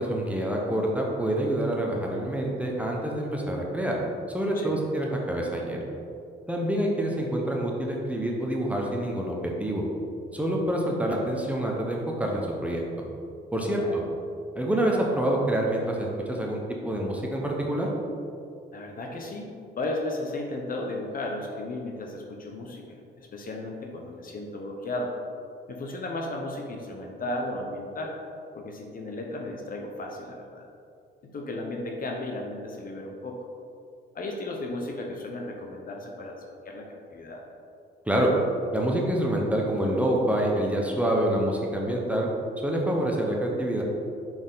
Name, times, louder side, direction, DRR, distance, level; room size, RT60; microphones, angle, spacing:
voice 1, 0.0-4.0 4.3-5.8 6.5-9.8 10.3-12.8 13.5-13.8 14.5-16.6 16.8-17.9 38.1-38.3 38.7-42.3 42.6-43.8, right 1 dB, 5° right, -2 dB, 1.0 m, -27 dB
voice 2, 13.7-14.0 18.7-19.5 19.8-25.1 25.7-28.2 28.5-30.7 31.2-33.4 34.1-37.4, left 2 dB, 45° left, 1 dB, 0.8 m, -35 dB
5.8 x 4.4 x 3.9 m, 2.5 s
cardioid pair, 90°, 20 cm